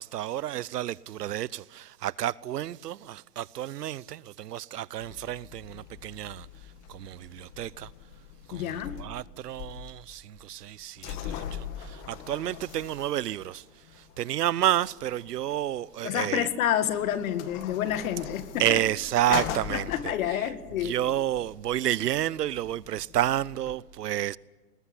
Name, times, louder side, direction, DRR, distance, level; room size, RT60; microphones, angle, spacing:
voice 1, 0.0-6.5 6.9-7.9 8.5-13.6 13.9-16.5 18.6-20.5 20.8-24.4, right 12 dB, 90° right, 0.8 m, -30 dB
sound 1, 5.0-23.8, left 9 dB, 35° left, 2.2 m, -42 dB
voice 2, 8.5-9.0 16.0-18.8 19.3-19.4 19.7-20.9, left 10 dB, 60° left, 2.1 m, -29 dB
24.0 x 20.5 x 9.9 m
hypercardioid pair, 140°, 46 cm